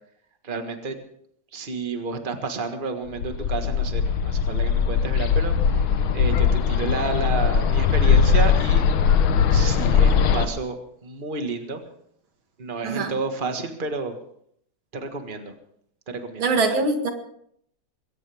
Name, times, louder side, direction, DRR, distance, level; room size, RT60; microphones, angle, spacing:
voice 1, 0.4-1.0 1.5-8.9 9.5-10.8 11.0-11.8 12.6-14.2 14.9-15.5 16.1-16.5, right 3 dB, 25° right, 6 dB, 1.7 m, -30 dB
Bird, 3.2-10.4, left 6 dB, 90° left, 1.8 m, -20 dB
voice 2, 12.8-13.1 16.4-17.1, right 3 dB, 85° right, 5 dB, 2.7 m, -22 dB
21.5 x 17.5 x 3.6 m, 0.68 s
omnidirectional pair, 2.1 m